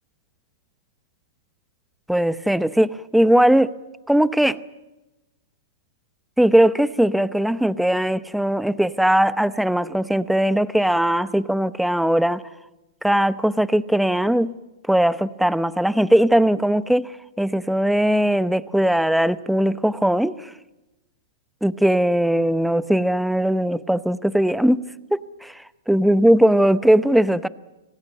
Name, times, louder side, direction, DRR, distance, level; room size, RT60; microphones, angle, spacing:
voice 1, 2.1-3.7 4.1-4.6 6.4-12.4 13.0-14.5 14.9-20.5 21.6-24.8 25.4-27.5, right 1 dB, ahead, 0.8 m, -19 dB
25.5 x 18.0 x 9.1 m
hypercardioid pair, 125°, 0 cm